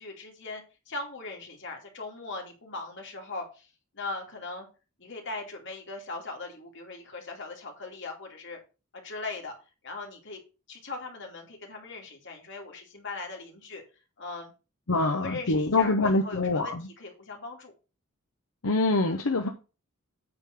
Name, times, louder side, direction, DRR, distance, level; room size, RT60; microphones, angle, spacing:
voice 1, 0.0-3.7 3.9-4.7 5.0-8.6 9.0-9.5 9.8-10.4 10.7-13.8 14.2-14.5 14.9-17.7 19.0-19.5, left 3 dB, 55° left, 2.6 m, -39 dB
voice 2, 14.9-16.9 18.6-19.5, left 2 dB, 80° left, 0.9 m, -25 dB
8.8 x 3.8 x 6.4 m
head